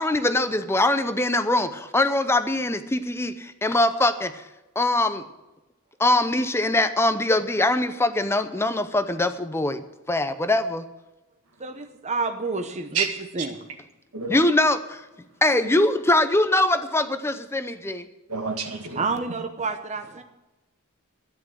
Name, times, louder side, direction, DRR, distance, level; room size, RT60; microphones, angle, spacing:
voice 1, 0.0-4.4 4.8-5.2 6.0-10.9 14.3-15.0 15.4-18.1, left 2 dB, 10° left, 10 dB, 0.6 m, -22 dB
voice 2, 11.6-13.1 13.3-13.6 19.0-20.2, right 4 dB, 30° right, 6 dB, 0.9 m, -29 dB
voice 3, 14.1-14.4 18.3-19.1, right 5 dB, 75° right, 5 dB, 2.1 m, -28 dB
13.0 x 9.9 x 6.3 m, 1.0 s
head